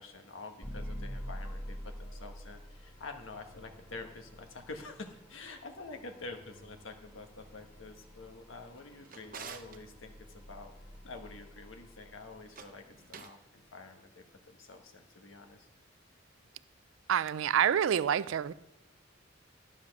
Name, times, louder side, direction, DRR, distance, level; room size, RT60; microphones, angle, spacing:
voice 1, 0.0-10.7 11.0-12.8 13.2-15.7, left 3 dB, 90° left, 1.3 m, -47 dB
sound 1, 0.6-12.8, equal, 15° left, 1.9 m, -47 dB
Drawer open or close, 8.6-9.8 12.4-13.4, right 6 dB, 45° right, 0.8 m, -49 dB
voice 2, 17.1-18.5, right 9 dB, 85° right, 0.4 m, -27 dB
12.0 x 7.2 x 5.9 m
head